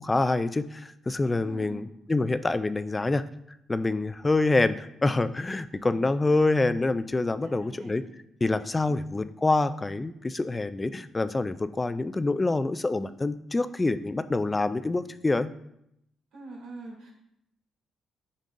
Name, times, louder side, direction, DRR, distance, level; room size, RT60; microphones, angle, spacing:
voice 1, 0.0-3.2 3.7-8.0 8.4-15.5, left 2 dB, 20° left, 12 dB, 0.3 m, -26 dB
voice 2, 1.4-1.8 5.9-6.4 7.4-7.9 8.9-9.0 16.3-17.1, right 2 dB, 90° right, -3 dB, 2.7 m, -44 dB
8.9 x 5.3 x 2.5 m, 0.78 s
cardioid pair, 90°, 0 cm